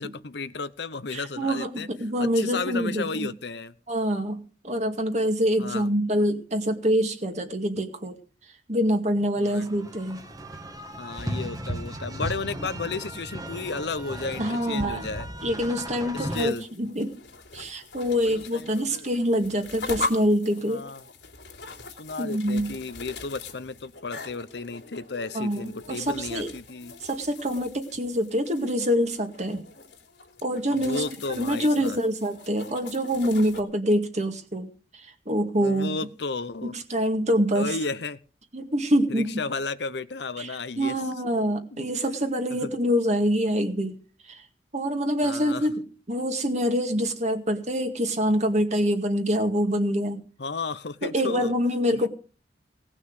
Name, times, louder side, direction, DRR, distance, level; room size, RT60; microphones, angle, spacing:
voice 1, 0.0-1.9 2.2-3.7 5.6-5.9 9.4-9.7 11.0-15.3 16.0-16.6 18.2-19.1 20.7-21.0 22.0-26.9 30.8-32.0 35.6-36.7 37.5-38.2 39.1-41.0 41.7-41.9 42.6-42.7 45.2-45.7 50.4-51.5 51.9-52.0, left 4 dB, 70° left, 14 dB, 0.8 m, -33 dB
voice 2, 1.1-3.3 3.9-8.2 8.7-10.2 14.4-15.0 15.4-17.2 17.5-20.8 22.2-22.7 25.3-26.5 27.0-29.6 30.4-31.0 31.3-36.0 36.6-37.7 38.5-39.3 40.4-43.9 44.3-44.4 44.7-50.2 51.0-52.1, equal, 40° right, 5 dB, 2.2 m, -25 dB
sound 1, 9.5-16.5, right 1 dB, 20° right, 1.5 m, -36 dB
sound 2, 16.2-33.6, left 3 dB, 90° left, 3.1 m, -41 dB
18.0 x 6.2 x 8.1 m, 0.38 s
head